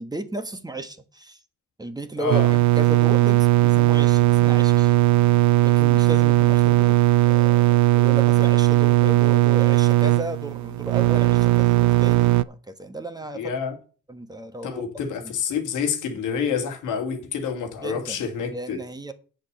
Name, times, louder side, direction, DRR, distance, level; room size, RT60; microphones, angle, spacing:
voice 1, 0.0-1.4 1.8-4.9 5.6-7.0 7.2-13.5 14.1-15.0 17.8-18.2 18.5-19.1, right 1 dB, 15° right, 1.4 m, -34 dB
voice 2, 2.2-2.5 13.3-13.8 14.6-18.8, left 6 dB, 85° left, 2.1 m, -28 dB
sound 1, 2.3-12.4, right 17 dB, 70° right, 0.6 m, -18 dB
8.4 x 6.7 x 6.6 m
cardioid pair, 90°, 30 cm